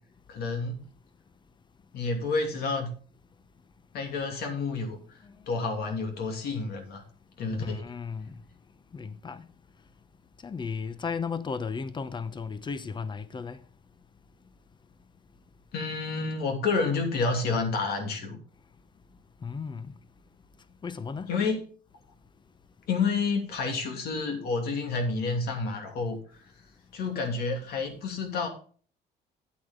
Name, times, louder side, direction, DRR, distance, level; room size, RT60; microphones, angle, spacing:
voice 1, 0.3-0.9 1.9-2.9 3.9-5.0 5.5-7.0 7.4-7.8 15.7-18.4 21.3-21.6 22.9-26.2 26.9-28.5, left 4 dB, 70° left, 2.7 m, -29 dB
voice 2, 7.6-8.3 8.9-9.4 10.4-13.6 19.4-19.9 20.8-21.3, left 5 dB, 25° left, 0.9 m, -35 dB
9.7 x 8.4 x 3.8 m
cardioid pair, 110°, 17 cm